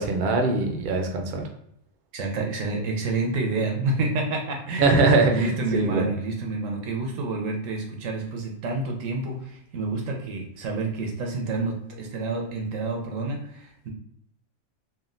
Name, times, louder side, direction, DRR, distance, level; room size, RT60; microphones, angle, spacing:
voice 1, 0.0-1.5 4.8-6.1, right 3 dB, 60° right, 4 dB, 0.6 m, -22 dB
voice 2, 2.1-5.0 5.3-13.9, right 3 dB, 90° right, 1 dB, 1.1 m, -29 dB
3.5 x 2.3 x 2.4 m, 0.73 s
omnidirectional pair, 1.3 m